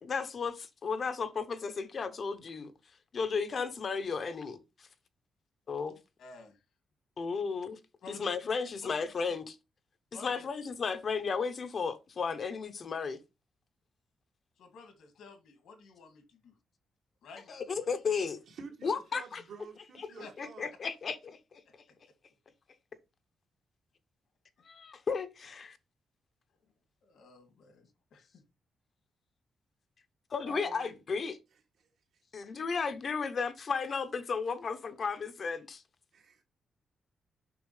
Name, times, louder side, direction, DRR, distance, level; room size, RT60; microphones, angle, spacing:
voice 1, 0.0-2.7 3.1-4.9 5.7-6.0 7.2-7.8 8.1-9.4 10.2-13.2 17.5-18.4 18.8-19.4 20.0-20.1 20.4-21.6 24.6-25.8 30.3-31.4 32.3-35.8, left 5 dB, 40° left, 0.8 m, -34 dB
voice 2, 6.2-6.6 8.0-8.4 8.8-8.9 9.3-9.4 10.1-10.5 14.6-16.6 17.2-17.8 20.1-20.3 21.7-22.0 27.0-28.4 30.4-30.6, left 3 dB, 85° left, 2.2 m, -52 dB
voice 3, 18.5-20.7 30.5-31.0 31.8-31.9 36.1-36.4, right 5 dB, 75° right, 2.3 m, -49 dB
7.0 x 6.0 x 3.2 m
wide cardioid pair, 170°, 0 cm